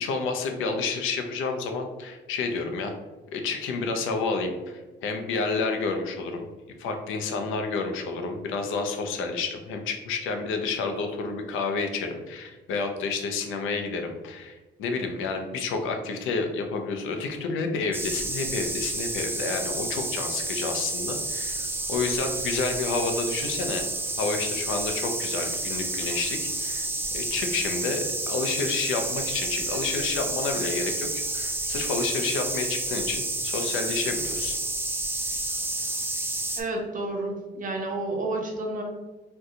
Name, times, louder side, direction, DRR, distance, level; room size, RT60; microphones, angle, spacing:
voice 1, 0.0-2.9 3.3-6.5 6.8-23.9 24.2-34.6, left 4 dB, 90° left, 4 dB, 0.5 m, -30 dB
sound 1, 17.9-36.6, right 2 dB, 10° right, 0.4 m, -30 dB
voice 2, 36.6-38.8, right 2 dB, 40° right, 1 dB, 0.8 m, -30 dB
2.7 x 2.2 x 3.7 m, 1.2 s
cardioid pair, 90°, 20 cm